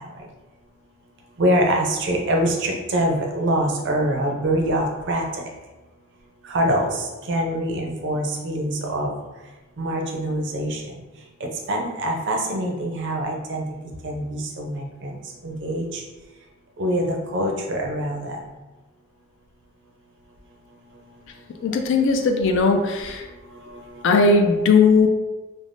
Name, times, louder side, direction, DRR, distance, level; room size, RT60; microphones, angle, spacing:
voice 1, 1.4-5.2 6.5-6.9 7.3-9.1 9.8-10.8 11.7-13.6 14.0-15.1 15.4-16.0 16.8-17.1 17.3-18.3, right 1 dB, 55° right, 1 dB, 0.5 m, -24 dB
voice 2, 21.6-23.2 24.0-25.1, left 4 dB, 55° left, 4 dB, 0.3 m, -18 dB
3.3 x 2.0 x 2.5 m, 1.1 s
head